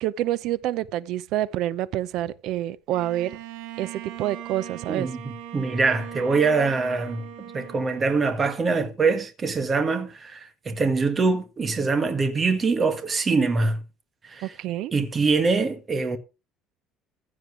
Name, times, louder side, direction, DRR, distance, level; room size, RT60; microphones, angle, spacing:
voice 1, 0.0-3.4 3.8-5.1 14.4-14.9, right 13 dB, 60° right, 0.7 m, -27 dB
Bowed string instrument, 2.9-8.7, right 10 dB, 80° right, 2.7 m, -40 dB
voice 2, 4.9-7.3 7.5-13.8 14.3-14.5 14.9-16.2, right 4 dB, 25° right, 1.7 m, -24 dB
15.5 x 7.4 x 4.8 m
cardioid pair, 150°, 0 cm